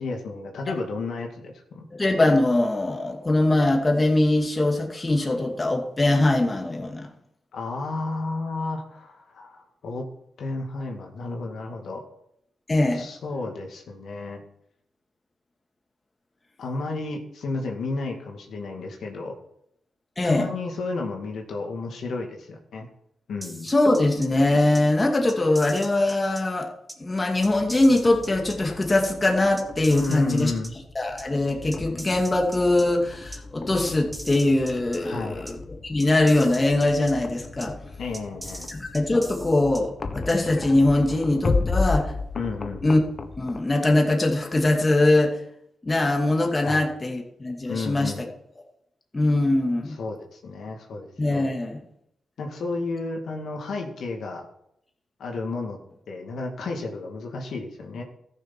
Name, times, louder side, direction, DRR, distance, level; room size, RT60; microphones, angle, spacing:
voice 1, 0.0-1.9 7.5-10.0 10.4-12.0 12.9-14.4 16.6-19.3 20.2-22.9 23.3-23.7 29.9-30.7 35.0-35.4 38.0-38.7 42.3-42.9 46.6-46.9 47.7-48.2 49.9-51.5 52.4-54.5 55.2-55.8 56.1-58.0, left 3 dB, 70° left, 1 dB, 2.2 m, -32 dB
voice 2, 1.9-7.1 12.7-13.0 20.2-20.5 23.6-26.7 27.0-30.5 31.0-35.6 35.8-37.7 38.7-42.1 42.8-43.0 43.4-45.4 45.8-48.1 49.1-50.0 51.2-51.8, left 2 dB, 25° left, 1 dB, 2.4 m, -22 dB
sound 1, 23.4-24.3 24.7-24.8 25.3-26.4 26.9-27.0 27.4-28.6 29.0-29.1 29.6-30.7 31.2-31.3 31.7-32.8 33.3-33.4 33.9-35.0 35.5-35.6 36.0-37.1 37.6-37.7 38.1-39.8 40.3-40.4, right 1 dB, 10° right, 2.3 m, -40 dB
sound 2, 27.4-43.6, left 3 dB, 50° left, 1.3 m, -34 dB
14.0 x 6.6 x 6.0 m, 0.74 s
cardioid pair, 70°, 0 cm